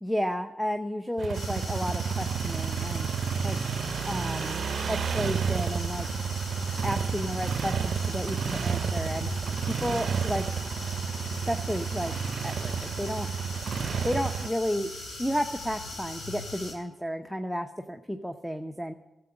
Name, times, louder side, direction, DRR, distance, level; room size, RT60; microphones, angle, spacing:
voice 1, 0.0-3.1 3.4-3.6 4.1-4.6 4.9-6.1 6.8-9.3 9.7-10.5 11.5-12.1 12.4-13.3 14.0-14.9 15.2-18.9, equal, ahead, 7 dB, 0.7 m, -32 dB
sound 1, 1.2-14.5, right 7 dB, 70° right, 0.5 m, -31 dB
sound 2, 1.3-16.7, left 2 dB, 80° left, 3.3 m, -40 dB
13.0 x 7.9 x 8.5 m, 0.99 s
cardioid pair, 55°, 0 cm